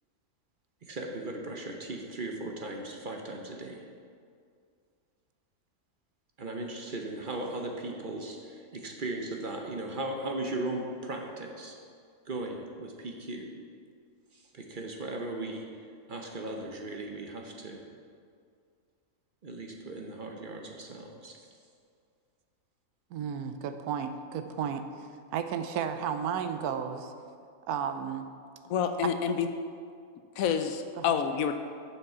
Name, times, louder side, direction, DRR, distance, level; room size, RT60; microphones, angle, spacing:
voice 1, 0.8-3.8 6.4-11.7 12.3-13.5 14.3-15.6 16.1-17.8 19.4-21.4, right 2 dB, 45° right, 2 dB, 0.7 m, -37 dB
voice 2, 23.1-24.8 25.3-27.1 27.7-28.3 29.0-29.1 31.0-31.1, right 8 dB, 85° right, 9 dB, 1.1 m, -33 dB
voice 3, 28.7-29.5 30.4-31.5, left 7 dB, 70° left, 8 dB, 0.9 m, -28 dB
7.3 x 6.6 x 5.6 m, 2.2 s
omnidirectional pair, 1.6 m